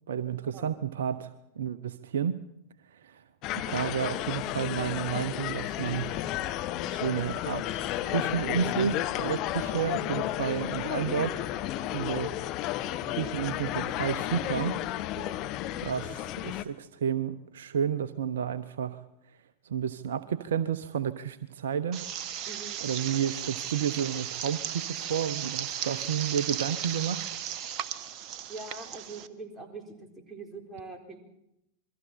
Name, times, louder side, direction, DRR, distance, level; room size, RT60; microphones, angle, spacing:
voice 1, 0.1-2.4 2.9-3.2 3.7-6.1 6.9-11.4 11.7-12.3 13.1-14.8 15.8-19.0 19.6-22.0 22.8-27.2, right 8 dB, 60° right, 14 dB, 0.8 m, -31 dB
sound 1, 3.4-16.6, left 13 dB, 40° left, 1.1 m, -32 dB
sound 2, 21.9-29.3, right 9 dB, 40° right, 1.1 m, -36 dB
voice 2, 22.5-22.8 28.5-31.2, right 3 dB, 10° right, 1 dB, 4.4 m, -43 dB
27.5 x 22.5 x 4.4 m, 0.83 s
figure-of-eight pair, 90°, 0 cm